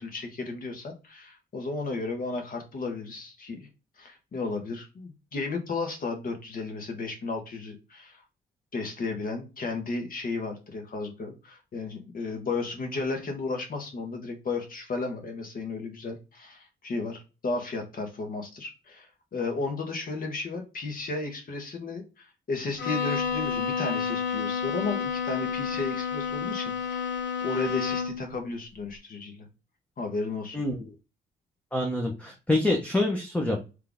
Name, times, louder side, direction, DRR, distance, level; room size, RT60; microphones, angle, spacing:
voice 1, 0.0-3.7 4.0-8.2 8.7-29.5 30.0-30.6, left 3 dB, 45° left, 4 dB, 1.5 m, -34 dB
Bowed string instrument, 22.8-28.3, left 6 dB, 65° left, 1.6 m, -30 dB
voice 2, 30.5-30.9 31.7-33.6, left 2 dB, 5° left, 1 dB, 1.0 m, -26 dB
3.8 x 3.3 x 3.6 m, 0.29 s
cardioid pair, 90°, 20 cm